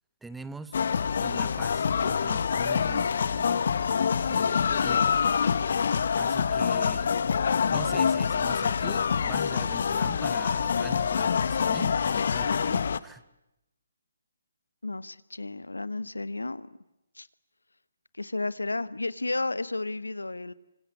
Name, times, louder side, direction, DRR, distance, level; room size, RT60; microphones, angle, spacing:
voice 1, 0.2-0.8 1.2-3.7 4.3-5.2 6.1-13.2, right 3 dB, 5° right, 13 dB, 0.9 m, -44 dB
sound 1, 0.7-13.0, left 6 dB, 60° left, 1.1 m, -26 dB
voice 2, 14.8-16.7 17.2-17.3 18.2-20.5, left 2 dB, 90° left, 16 dB, 1.2 m, -32 dB
26.0 x 25.5 x 8.5 m, 0.90 s
figure-of-eight pair, 145°, 0 cm